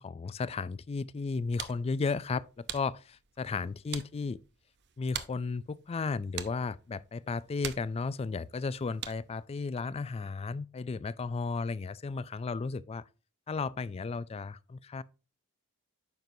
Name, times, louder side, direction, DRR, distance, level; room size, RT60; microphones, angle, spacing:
voice 1, 0.0-4.4 5.0-13.0 13.5-15.0, left 4 dB, 25° left, 0.3 m, -34 dB
sound 1, 1.2-9.4, right 9 dB, 50° right, 0.7 m, -45 dB
9.2 x 6.0 x 2.7 m
head